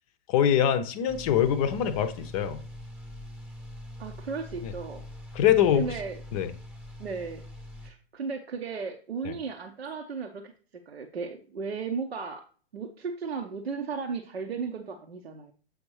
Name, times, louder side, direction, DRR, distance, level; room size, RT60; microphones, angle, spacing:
voice 1, 0.3-2.6 4.6-4.7 5.3-5.9 6.3-6.5 9.2-9.3, left 9 dB, 35° left, 0.6 m, -24 dB
sound 1, 1.1-7.9, left 1 dB, 5° right, 0.9 m, -43 dB
voice 2, 4.0-5.0 5.7-6.2 7.0-7.4 7.8-10.4 10.9-12.4 12.7-15.5, right 5 dB, 80° right, 0.8 m, -35 dB
7.9 x 5.1 x 3.1 m
figure-of-eight pair, 105°, 31 cm